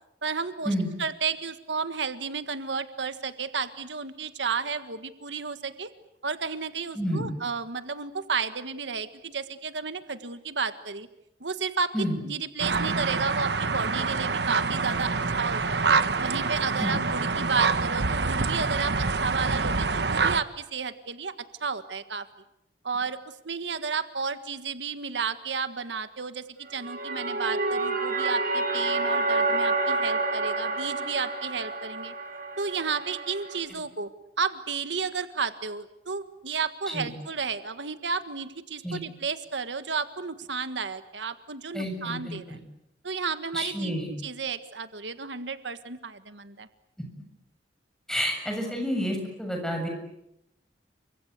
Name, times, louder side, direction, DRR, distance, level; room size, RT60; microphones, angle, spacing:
voice 1, 0.2-5.9 6.2-11.1 11.4-11.9 12.2-15.8 16.2-21.3 21.6-22.2 22.8-23.2 23.4-32.1 32.6-34.1 34.4-42.6 43.0-46.7, right 5 dB, 85° right, 11 dB, 1.6 m, -32 dB
voice 2, 7.0-7.3 11.9-12.2 16.8-17.0 36.9-37.1 38.8-39.0 41.7-42.6 43.5-44.1 48.1-49.9, equal, 5° left, 2 dB, 7.2 m, -29 dB
sound 1, 12.6-20.4, right 4 dB, 70° right, 1.2 m, -26 dB
sound 2, 26.6-33.6, right 3 dB, 50° right, 7.2 m, -29 dB
29.5 x 25.0 x 8.2 m, 0.85 s
head